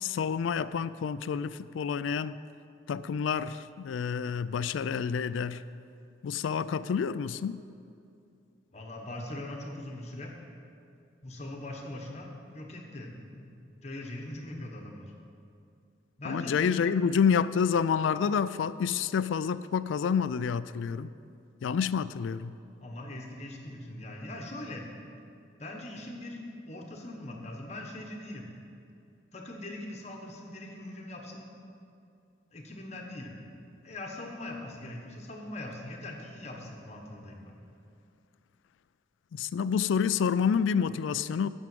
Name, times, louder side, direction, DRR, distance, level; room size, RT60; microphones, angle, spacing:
voice 1, 0.0-2.4 2.9-5.6 6.2-7.6 16.2-21.1 21.6-22.5 39.3-41.5, left 6 dB, 75° left, 15 dB, 0.3 m, -28 dB
voice 2, 8.7-10.3 11.2-13.5 13.8-15.1 16.2-17.0 22.8-24.8 25.6-28.5 29.3-31.5 32.5-33.3 33.8-37.6, left 1 dB, 35° left, 1 dB, 1.2 m, -41 dB
9.0 x 6.4 x 7.7 m, 2.5 s
head